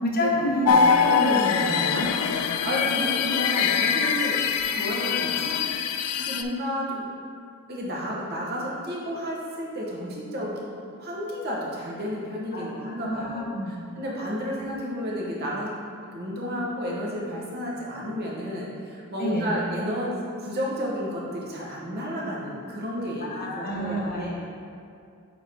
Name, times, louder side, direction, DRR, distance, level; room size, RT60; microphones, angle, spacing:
voice 1, 0.0-2.1 12.5-13.7 19.2-19.5 23.2-24.3, equal, 45° left, -3 dB, 1.0 m, -28 dB
sound 1, 0.7-6.4, left 6 dB, 80° left, 0.3 m, -23 dB
voice 2, 2.6-5.5 6.2-7.0 7.7-10.6 10.9-15.7 16.1-20.1 20.4-24.3, equal, 45° right, -4 dB, 1.0 m, -31 dB
8.8 x 3.6 x 3.4 m, 2.4 s
head